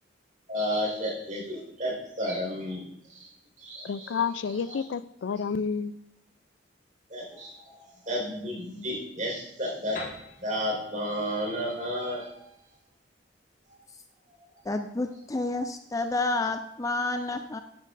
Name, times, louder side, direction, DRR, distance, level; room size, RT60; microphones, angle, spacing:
voice 1, 0.5-2.8 3.1-3.3 3.6-4.2 4.5-4.8 7.1-10.1 10.4-12.5, equal, 40° right, -2 dB, 4.5 m, -32 dB
voice 2, 3.8-5.9, left 6 dB, 90° left, 16 dB, 0.4 m, -30 dB
Piano, 10.0-13.6, left 2 dB, 50° left, 3.8 m, -45 dB
voice 3, 14.7-17.6, left 2 dB, 20° left, 7 dB, 0.4 m, -29 dB
12.5 x 10.5 x 2.6 m, 0.78 s
head